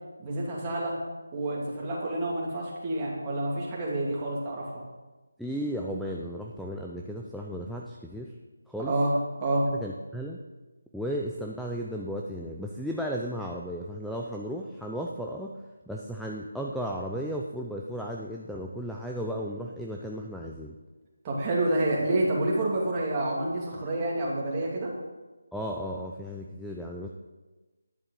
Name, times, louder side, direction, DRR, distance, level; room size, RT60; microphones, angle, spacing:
voice 1, 0.2-1.0 1.3-4.7 8.8-9.1 9.4-9.7 21.2-24.9, right 1 dB, 20° right, -4 dB, 2.7 m, -28 dB
voice 2, 5.4-8.3 8.7-8.9 9.7-10.4 10.9-15.6 15.9-20.7 25.5-27.1, equal, ahead, -2 dB, 0.5 m, -35 dB
10.5 x 7.3 x 6.5 m, 1.2 s
figure-of-eight pair, 165°, 0 cm